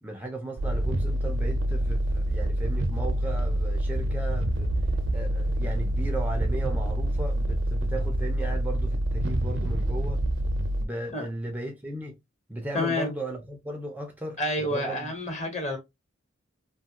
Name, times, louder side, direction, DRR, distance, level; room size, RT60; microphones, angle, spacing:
voice 1, 0.0-4.7 5.1-10.2 10.8-12.2 12.5-15.1, right 1 dB, 10° right, 0.4 m, -36 dB
sound 1, 0.6-10.9, right 1 dB, 65° right, 0.5 m, -26 dB
voice 2, 12.7-13.1 14.4-15.8, left 1 dB, 35° left, 1.2 m, -28 dB
2.7 x 2.3 x 2.8 m
head